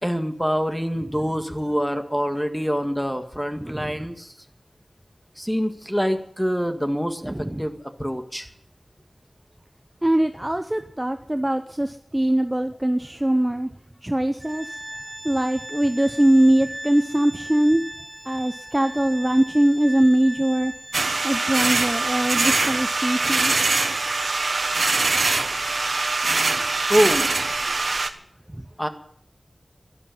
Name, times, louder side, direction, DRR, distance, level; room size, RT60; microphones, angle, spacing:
voice 1, 0.0-4.3 5.4-7.7 8.0-8.5 26.9-27.3 28.8-28.9, equal, ahead, 6 dB, 1.7 m, -25 dB
voice 2, 3.6-4.1 7.2-7.6 10.0-13.7 14.0-14.8 15.2-17.8 18.3-20.7 21.2-23.6 28.5-28.6, right 1 dB, 20° right, 8 dB, 0.7 m, -22 dB
Organ, 14.4-25.1, right 1 dB, 35° right, 4.1 m, -38 dB
sound 1, 20.9-28.1, right 3 dB, 80° right, 1.1 m, -23 dB
12.5 x 12.0 x 7.7 m, 0.66 s
wide cardioid pair, 70°, 0 cm